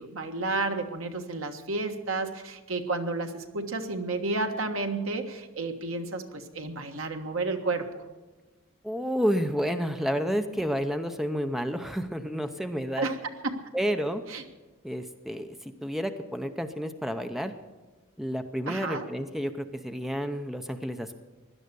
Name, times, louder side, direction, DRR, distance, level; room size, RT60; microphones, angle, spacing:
voice 1, 0.0-7.9 13.0-13.2 13.4-13.6 14.3-14.4 18.7-19.0, right 3 dB, 65° right, 5 dB, 1.5 m, -31 dB
voice 2, 8.8-13.1 13.7-14.2 14.8-17.5 18.2-21.1, equal, ahead, 7 dB, 0.6 m, -30 dB
16.5 x 11.5 x 6.8 m, 1.2 s
head